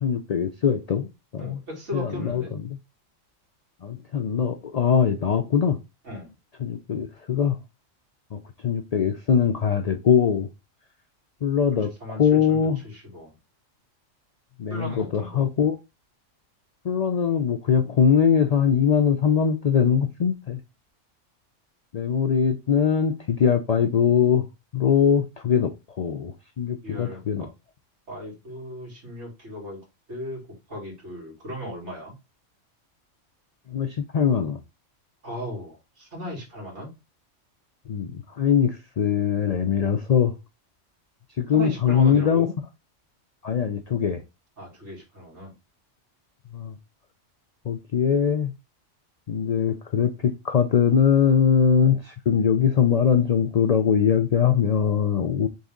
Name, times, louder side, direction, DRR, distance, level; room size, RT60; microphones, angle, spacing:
voice 1, 0.0-1.6 1.9-2.8 3.8-5.8 6.6-7.6 8.3-10.5 11.4-12.8 14.6-15.8 16.8-20.6 21.9-24.5 24.7-27.5 33.7-34.6 37.9-40.3 41.4-42.5 43.4-44.2 46.5-46.8 47.6-48.5 49.3-55.5, left 7 dB, 70° left, 0.3 m, -22 dB
voice 2, 1.4-2.5 6.0-6.3 12.0-13.3 14.7-15.5 26.8-27.5 28.1-29.8 30.1-30.4 30.7-32.1 35.2-36.9 41.5-42.5 44.6-45.5, left 1 dB, 65° right, 2.8 m, -36 dB
4.1 x 3.5 x 3.7 m
omnidirectional pair, 1.3 m